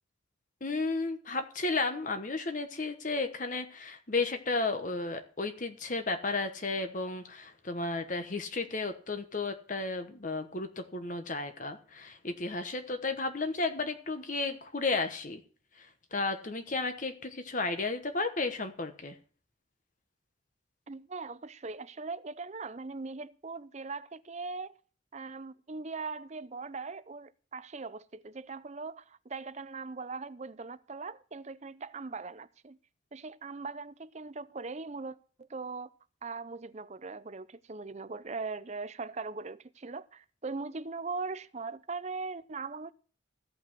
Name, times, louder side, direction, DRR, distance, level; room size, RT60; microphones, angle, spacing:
voice 1, 0.6-15.4 15.8-15.9 16.1-19.1, left 3 dB, 40° left, 1.1 m, -33 dB
voice 2, 20.9-24.8 25.1-32.8 33.1-35.9 36.2-42.9, right 4 dB, 35° right, 0.6 m, -40 dB
14.5 x 5.8 x 7.5 m
head